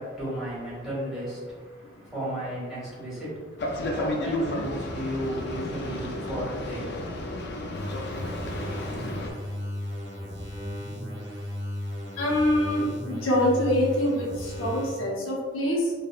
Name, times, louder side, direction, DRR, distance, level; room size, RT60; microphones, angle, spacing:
voice 1, 0.0-7.0, equal, ahead, -11 dB, 1.2 m, -34 dB
Boat Water vehicle, 3.6-9.3, left 1 dB, 55° left, 0.4 m, -32 dB
sound 1, 7.7-15.1, left 1 dB, 60° right, 0.7 m, -35 dB
voice 2, 12.2-15.9, left 1 dB, 90° left, -4 dB, 0.7 m, -25 dB
3.3 x 2.2 x 2.3 m, 1.5 s
head